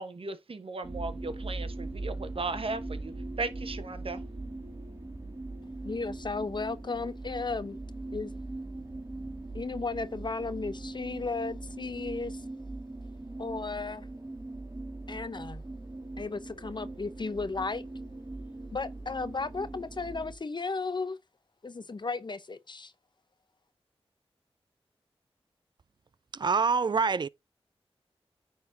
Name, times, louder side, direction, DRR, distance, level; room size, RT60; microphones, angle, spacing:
voice 1, 0.0-3.1 3.4-4.2, right 3 dB, 60° right, 1.1 m, -36 dB
sound 1, 0.8-20.3, right 2 dB, 25° right, 2.1 m, -40 dB
voice 2, 5.8-7.8 8.1-8.3 9.5-12.4 13.4-14.1 15.1-15.6 16.2-17.8 18.7-21.2 21.6-22.9, left 4 dB, 45° left, 0.7 m, -34 dB
voice 3, 26.3-27.3, right 5 dB, 45° right, 0.4 m, -25 dB
9.5 x 3.9 x 2.7 m
cardioid pair, 40°, 10 cm